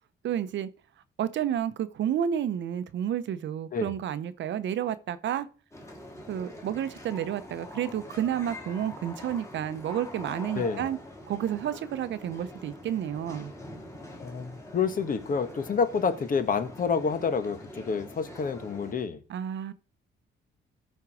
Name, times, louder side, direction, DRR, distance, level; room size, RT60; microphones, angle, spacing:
voice 1, 0.2-0.7 1.2-5.5 6.3-11.0 11.3-13.5 19.3-19.7, right 10 dB, 65° right, 0.8 m, -30 dB
sound 1, 5.7-18.9, left 1 dB, 15° left, 2.7 m, -44 dB
voice 2, 10.5-10.9 14.2-19.2, left 5 dB, 45° left, 1.2 m, -28 dB
13.5 x 4.5 x 4.9 m
cardioid pair, 90°, 20 cm